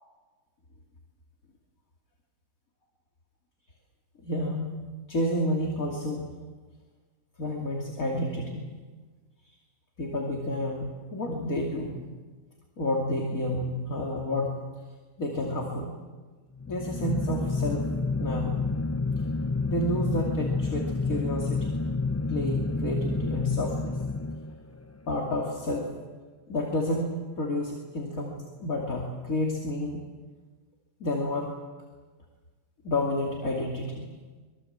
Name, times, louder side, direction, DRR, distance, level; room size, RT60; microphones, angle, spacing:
voice 1, 4.2-4.8 5.1-6.2 7.4-8.7 9.4-9.6 10.0-12.0 12.8-14.6 15.2-15.9 16.7-17.9 18.2-18.6 19.7-21.7 22.3-24.0 25.1-25.9 26.5-30.0 31.0-31.5 32.8-34.1, left 1 dB, 60° left, -1 dB, 3.2 m, -30 dB
sound 1, 16.6-24.9, left 3 dB, 25° left, 0.3 m, -29 dB
25.0 x 23.0 x 8.1 m, 1.4 s
omnidirectional pair, 1.6 m